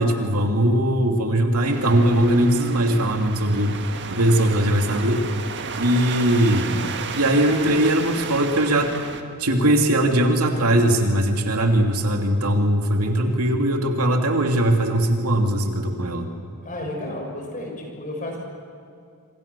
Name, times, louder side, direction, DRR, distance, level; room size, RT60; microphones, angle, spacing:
voice 1, 0.0-3.8 4.1-5.2 5.8-6.8 7.1-9.0 9.4-16.3, right 1 dB, 80° right, 3 dB, 2.8 m, -20 dB
sound 1, 1.6-9.2, right 5 dB, 55° right, 1.7 m, -33 dB
voice 2, 16.6-18.4, left 1 dB, 35° left, 1 dB, 6.4 m, -32 dB
26.5 x 26.0 x 7.0 m, 2.3 s
head